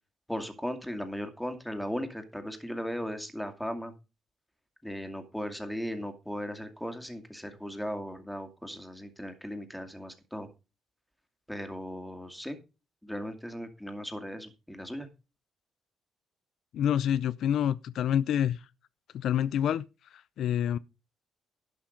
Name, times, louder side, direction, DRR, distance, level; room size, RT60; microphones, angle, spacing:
voice 1, 0.3-3.9 4.8-10.5 11.5-12.6 13.0-15.1, equal, ahead, 2.3 m, -37 dB
voice 2, 16.7-18.6 19.1-19.8 20.4-20.8, left 10 dB, 75° left, 0.4 m, -27 dB
11.5 x 5.7 x 5.2 m
cardioid pair, 90°, 0 cm